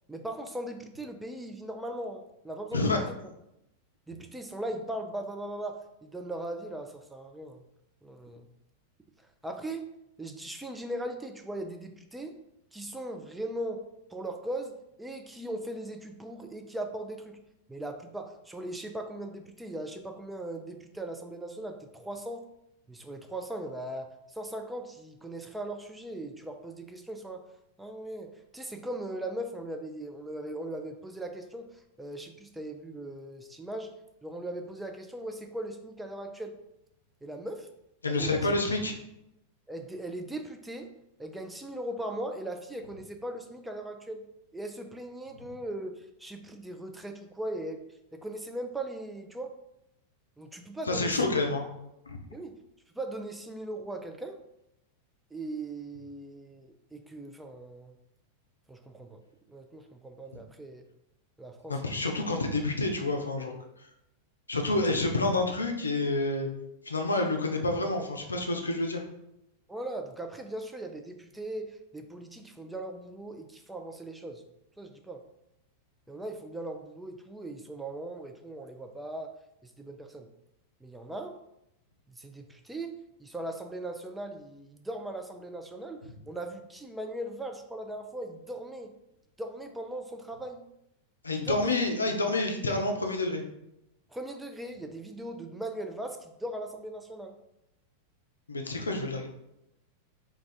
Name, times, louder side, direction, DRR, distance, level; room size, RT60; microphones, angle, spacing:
voice 1, 0.1-3.2 4.1-7.6 8.0-8.5 9.4-9.8 10.2-12.4 12.7-13.8 14.1-17.4 17.7-22.4 22.9-27.5 27.8-33.9 34.2-36.6 37.2-37.7 38.1-38.5 39.7-40.9 41.2-44.2 44.5-47.8 48.1-49.5 50.4-51.4 52.3-52.6 52.9-54.4 55.3-57.9 58.7-59.2 59.5-60.8 61.4-61.8 62.1-62.2 69.7-74.4 74.8-75.2 76.1-79.3 79.6-80.3 80.8-81.4 82.1-82.9 83.2-88.9 89.4-90.6 91.3-91.8 94.1-97.4, right 1 dB, 5° right, 5 dB, 0.3 m, -39 dB
voice 2, 38.0-38.9 50.9-51.6 52.1-52.2 61.7-63.5 64.5-66.5 66.8-69.0 91.2-93.4 98.5-99.3, left 2 dB, 75° left, 3 dB, 0.4 m, -28 dB
2.3 x 2.3 x 3.9 m, 0.84 s
figure-of-eight pair, 90°, 0 cm